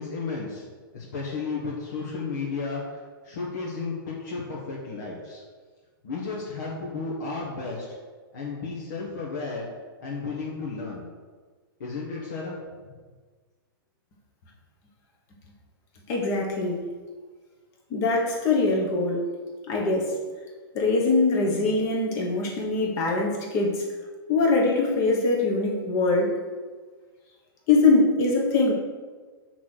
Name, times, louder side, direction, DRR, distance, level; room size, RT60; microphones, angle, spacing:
voice 1, 0.0-5.4 6.0-7.9 8.3-9.7 10.0-11.1 11.8-12.9, left 4 dB, 55° left, -4 dB, 1.4 m, -33 dB
voice 2, 16.1-16.8 17.9-19.3 19.7-20.2 20.7-23.9 24.3-26.3 27.7-28.7, left 3 dB, 25° left, 0 dB, 1.3 m, -23 dB
5.9 x 4.2 x 6.3 m, 1.4 s
hypercardioid pair, 165°, 12 cm